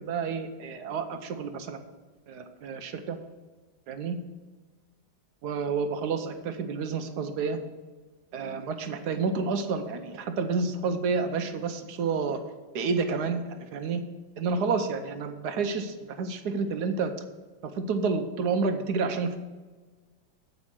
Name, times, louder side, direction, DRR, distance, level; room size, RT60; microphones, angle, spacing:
voice 1, 0.0-1.8 2.3-3.2 3.9-4.2 5.4-7.6 8.3-12.4 12.7-14.0 14.4-17.1 17.6-19.4, right 4 dB, 65° right, 7 dB, 1.2 m, -29 dB
8.2 x 5.2 x 7.3 m, 1.4 s
omnidirectional pair, 2.0 m